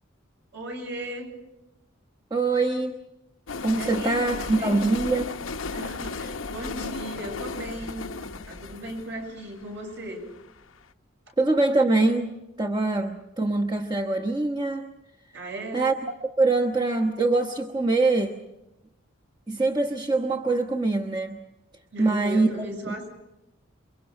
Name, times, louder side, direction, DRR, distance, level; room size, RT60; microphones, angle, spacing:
voice 1, 0.5-1.4 3.7-4.9 5.7-8.1 8.5-10.2 15.3-15.9 21.9-23.1, right 1 dB, 60° right, 2 dB, 7.3 m, -36 dB
voice 2, 2.3-3.0 3.6-5.3 11.4-14.9 15.7-15.9 16.2-18.4 19.5-21.4 22.0-22.9, right 3 dB, 20° right, 2 dB, 1.1 m, -24 dB
sound 1, 3.5-10.5, left 4 dB, 85° left, 0.9 m, -35 dB
28.5 x 24.0 x 5.4 m, 0.92 s
head